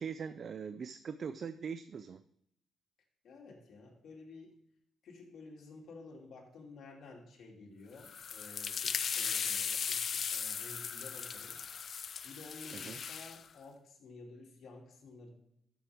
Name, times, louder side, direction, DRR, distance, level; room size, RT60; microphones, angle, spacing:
voice 1, 0.0-2.2 12.7-13.0, right 6 dB, 45° right, 12 dB, 0.4 m, -41 dB
voice 2, 3.2-4.6 5.0-11.6 12.2-15.3, left 3 dB, 65° left, -1 dB, 2.9 m, -52 dB
sound 1, 8.0-13.4, left 7 dB, 50° left, 0.5 m, -37 dB
13.5 x 7.2 x 3.5 m, 0.75 s
cardioid pair, 125°, 0 cm